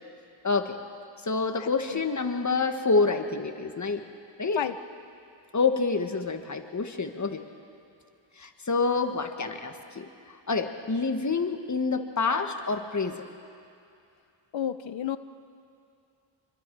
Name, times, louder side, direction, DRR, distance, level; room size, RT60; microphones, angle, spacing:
voice 1, 0.4-0.8 1.2-4.1 4.4-4.6 5.5-7.4 8.4-13.2, left 4 dB, 40° left, 6 dB, 1.5 m, -27 dB
voice 2, 1.6-2.0 4.6-4.7 14.5-15.2, left 10 dB, 75° left, 11 dB, 0.8 m, -31 dB
26.0 x 23.0 x 4.7 m, 2.5 s
cardioid pair, 70°, 46 cm